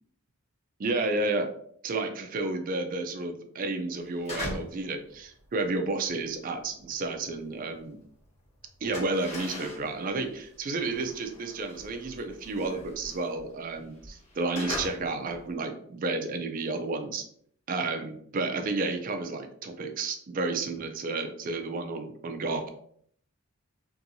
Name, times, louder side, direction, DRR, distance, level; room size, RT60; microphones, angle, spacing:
voice 1, 0.8-1.5 1.8-8.0 8.8-17.2 17.7-22.7, right 3 dB, 40° right, 5 dB, 0.3 m, -31 dB
sound 1, 4.0-4.9 5.2-8.1 8.4-15.5, left 1 dB, 30° left, 1.1 m, -41 dB
2.7 x 2.6 x 2.6 m, 0.63 s
head